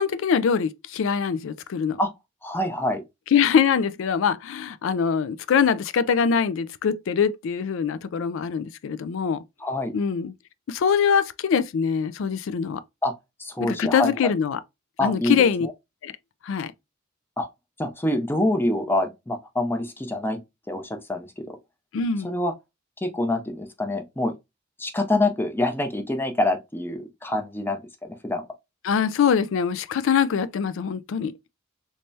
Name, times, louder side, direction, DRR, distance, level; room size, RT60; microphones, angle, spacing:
voice 1, 0.0-2.0 3.3-9.4 9.9-10.3 10.7-12.8 13.6-14.6 15.0-15.7 16.0-16.1 16.4-16.7 21.9-22.3 28.8-31.3, left 6 dB, 70° left, 0.4 m, -23 dB
voice 2, 2.4-3.0 9.6-9.9 13.0-13.1 13.4-14.1 15.0-15.7 17.4-17.5 17.8-20.4 20.7-21.6 22.2-22.5 23.0-24.3 24.8-28.4, left 1 dB, 10° left, 0.6 m, -26 dB
3.3 x 3.2 x 2.7 m
head